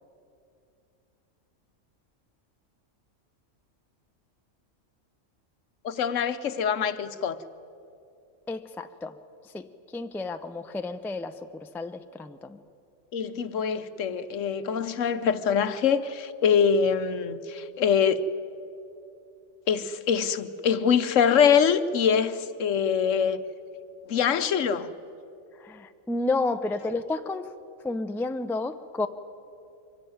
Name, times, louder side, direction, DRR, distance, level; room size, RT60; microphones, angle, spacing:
voice 1, 5.8-7.4 13.1-18.2 19.7-23.4 24.1-24.9, left 7 dB, 75° left, 1.2 m, -24 dB
voice 2, 8.5-9.2 9.4-9.6 9.9-12.6 25.5-27.5 27.8-29.1, left 3 dB, 5° left, 0.4 m, -31 dB
24.0 x 16.0 x 9.4 m
omnidirectional pair, 1.3 m